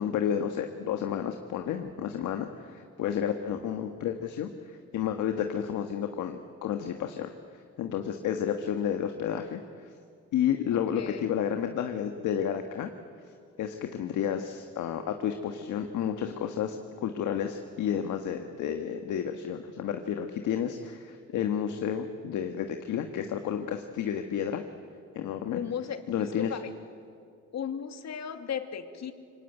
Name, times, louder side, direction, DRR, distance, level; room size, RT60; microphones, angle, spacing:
voice 1, 0.0-7.3 7.8-9.9 10.3-12.9 13.6-16.8 17.0-24.6 25.1-25.6 26.1-26.5, left 9 dB, 80° left, 6 dB, 1.6 m, -31 dB
voice 2, 10.9-11.3 25.5-26.7 27.5-29.1, left 8 dB, 60° left, 7 dB, 2.3 m, -36 dB
26.5 x 24.0 x 9.1 m, 2.3 s
cardioid pair, 90°, 30 cm